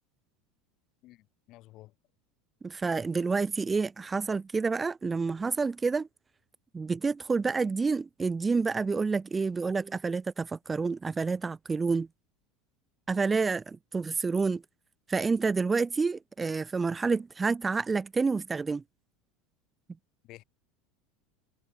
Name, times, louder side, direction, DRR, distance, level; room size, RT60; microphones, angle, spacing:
voice 1, 1.0-1.9 20.2-20.4, left 17 dB, 50° left, 3.0 m, -52 dB
voice 2, 2.6-6.1 6.7-12.1 13.1-14.6 15.1-18.8, right 4 dB, 15° right, 0.4 m, -28 dB
supercardioid pair, 125°, 0 cm